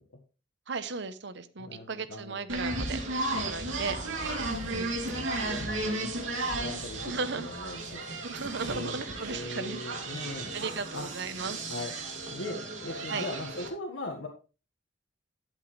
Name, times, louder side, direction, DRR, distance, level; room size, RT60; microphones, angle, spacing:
voice 1, 0.7-3.0 3.4-4.0 4.7-5.0 7.0-7.5 8.2-9.8 10.5-11.6 13.1-13.3, right 4 dB, 65° right, 13 dB, 0.9 m, -36 dB
voice 2, 1.6-2.4 3.6-3.8 4.6-4.9 5.4-8.0 8.3-9.0 9.3-10.5 10.9-11.1 11.7-11.9 12.3-14.3, left 2 dB, 85° left, 0 dB, 1.7 m, -40 dB
sound 1, 2.5-13.7, right 2 dB, 80° right, 2.8 m, -34 dB
12.0 x 8.4 x 3.4 m, 0.35 s
head